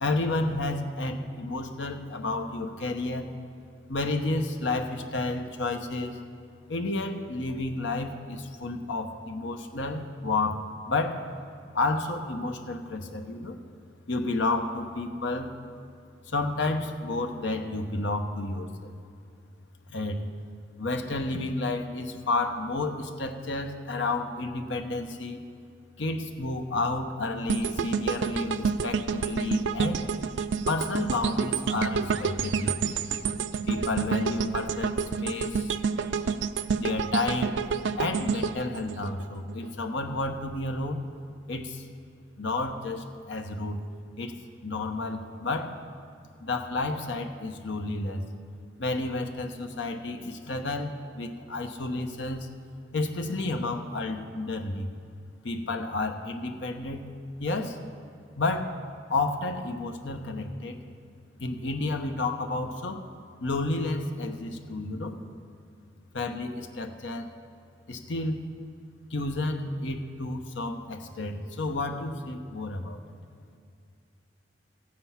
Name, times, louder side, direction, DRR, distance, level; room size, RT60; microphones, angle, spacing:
voice 1, 0.0-3.3 3.9-6.2 6.7-11.2 11.7-13.6 14.1-15.5 16.3-18.9 19.9-20.2 20.8-25.4 26.0-30.0 30.7-32.9 33.7-35.7 36.7-37.5 38.0-41.0 41.5-41.9 42.4-43.8 44.2-44.3 44.6-45.8 46.4-48.3 48.8-52.5 52.9-54.9 55.4-57.1 57.4-57.8 58.4-58.7 59.1-60.8 61.4-63.0 63.4-65.1 66.1-67.3 67.9-68.5 69.1-73.0, left 2 dB, 80° left, 5 dB, 0.9 m, -31 dB
sound 1, 27.5-39.7 40.1-40.2, right 5 dB, 80° right, 0.4 m, -29 dB
14.5 x 7.8 x 5.8 m, 2.4 s
head